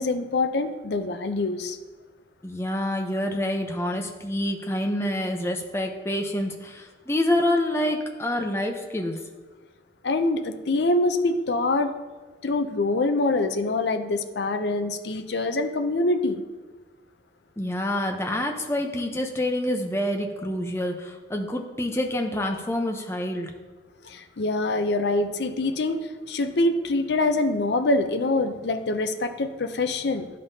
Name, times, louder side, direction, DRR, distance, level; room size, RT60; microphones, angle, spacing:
voice 1, 0.0-1.8 10.0-11.9 12.4-16.4 24.0-30.3, left 2 dB, 75° left, 8 dB, 0.6 m, -25 dB
voice 2, 2.4-9.2 17.6-23.5, left 1 dB, 15° left, 2 dB, 0.7 m, -27 dB
12.0 x 5.3 x 2.7 m, 1.3 s
head